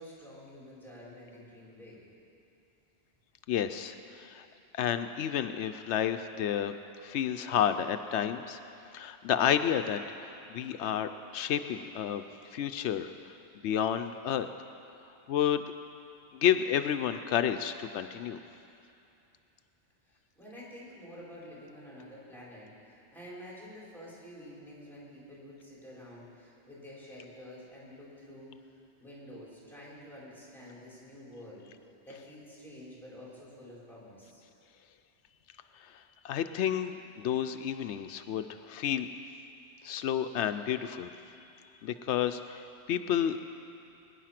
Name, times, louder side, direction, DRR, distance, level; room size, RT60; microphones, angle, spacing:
voice 1, 0.0-2.0 20.1-28.5 29.0-31.7 32.0-34.4 41.9-42.1, equal, ahead, -7 dB, 4.8 m, -49 dB
voice 2, 3.5-4.5 4.7-6.7 7.0-8.6 8.9-12.2 12.5-13.1 13.6-14.5 15.3-15.6 16.3-18.4 36.2-39.1 39.8-41.1 41.8-42.4 42.9-43.4, left 9 dB, 85° left, 9 dB, 0.9 m, -30 dB
22.5 x 10.0 x 5.9 m, 2.7 s
omnidirectional pair, 1.1 m